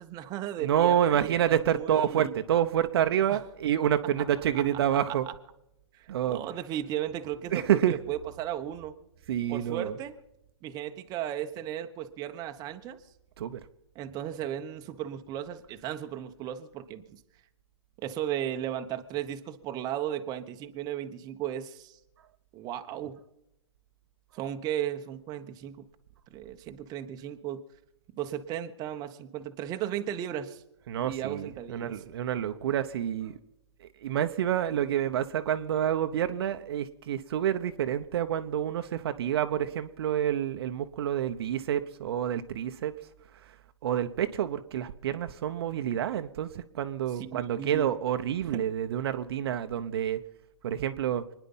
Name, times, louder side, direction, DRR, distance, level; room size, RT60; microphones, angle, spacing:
voice 1, 0.0-2.3 3.3-3.4 4.5-5.0 5.9-9.0 9.5-10.1 10.6-13.0 13.9-17.2 18.0-22.0 22.5-23.2 24.3-25.8 26.3-27.6 28.2-30.6 31.0-31.9 47.2-47.9 48.5-48.6, right 11 dB, 25° right, 7 dB, 1.2 m, -35 dB
voice 2, 0.6-5.3 6.1-6.4 7.5-7.9 9.3-9.9 13.4-13.6 30.9-33.3 34.0-42.9 43.8-50.2 50.6-51.2, right 10 dB, 55° right, 9 dB, 1.0 m, -28 dB
25.0 x 10.5 x 5.6 m, 0.86 s
hypercardioid pair, 135°, 15 cm